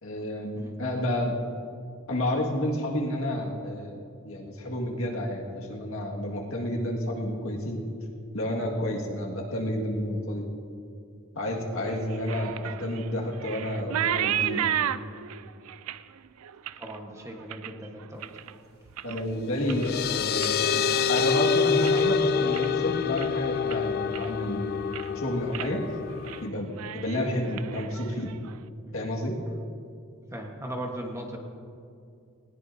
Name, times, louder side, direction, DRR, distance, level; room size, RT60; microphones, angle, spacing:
voice 1, 0.0-1.4 2.1-4.0 4.2-7.8 8.3-10.5 11.4-14.7 19.0-20.8 21.1-24.7 25.2-25.8 26.4-26.7 26.9-28.3 28.9-29.4, left 1 dB, 65° left, 0 dB, 1.9 m, -30 dB
sound 1, 11.9-18.5 18.9-19.3 19.6-22.1 22.4-22.8 23.2-23.3 23.7-24.5 24.8-25.2 25.5-25.7 26.1-26.4 26.7-28.6, right 10 dB, 80° right, 0.4 m, -34 dB
voice 2, 16.8-18.4 29.5-29.6 30.3-31.4, right 1 dB, 15° right, 1 dB, 1.3 m, -38 dB
sound 2, 19.3-26.5, left 6 dB, 45° left, 0.3 m, -27 dB
19.5 x 17.5 x 2.7 m, 2.5 s
head